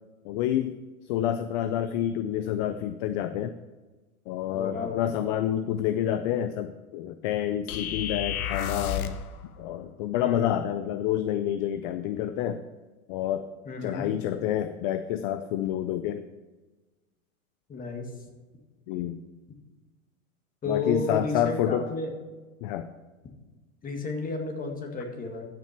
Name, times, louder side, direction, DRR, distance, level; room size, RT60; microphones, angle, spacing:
voice 1, 0.2-0.8 1.0-3.5 4.3-9.2 9.6-12.6 13.1-13.5 13.8-16.2 18.9-19.2 20.7-21.9 22.6-22.9, left 11 dB, 35° left, 11 dB, 0.4 m, -28 dB
voice 2, 4.5-5.0 10.2-10.6 13.7-14.1 17.7-18.1 20.6-22.1 23.8-25.5, left 3 dB, 20° left, 2 dB, 1.9 m, -32 dB
sound 1, 7.7-9.3, left 9 dB, 80° left, 1.0 m, -31 dB
13.5 x 6.0 x 4.4 m, 1.3 s
hypercardioid pair, 120°, 44 cm